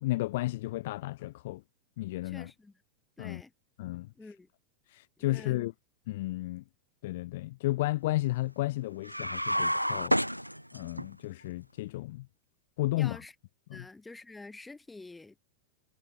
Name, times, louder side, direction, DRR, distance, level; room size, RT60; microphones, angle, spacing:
voice 1, 0.0-1.6 2.0-2.5 3.2-3.4 3.8-4.1 4.9-5.7 6.1-6.6 7.0-10.2 10.7-12.3 12.8-13.2 13.7-13.8, left 18 dB, 50° left, 0.3 m, -33 dB
voice 2, 2.2-2.8 3.2-3.5 4.2-4.5 5.2-5.7 13.0-13.3 13.7-15.4, left 3 dB, 10° left, 2.0 m, -48 dB
sound 1, 9.0-11.1, equal, 90° right, 0.3 m, -29 dB
figure-of-eight pair, 90°, 0 cm